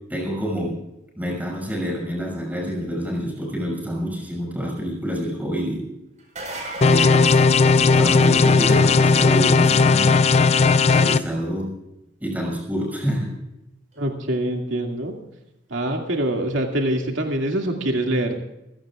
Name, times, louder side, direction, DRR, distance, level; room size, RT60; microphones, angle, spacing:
voice 1, 0.1-0.8 1.1-5.8 6.9-7.4 7.8-10.2 10.8-11.8 12.2-13.3, equal, 10° right, 0 dB, 6.1 m, -27 dB
sound 1, 6.2-8.4 13.9-14.0 15.9-16.0, right 1 dB, 40° right, 4.8 m, -35 dB
sound 2, 6.8-11.2, left 4 dB, 35° left, 0.4 m, -16 dB
voice 2, 14.0-15.2 15.7-18.4, right 1 dB, 85° right, 2 dB, 2.3 m, -24 dB
26.0 x 17.0 x 2.4 m, 0.88 s
head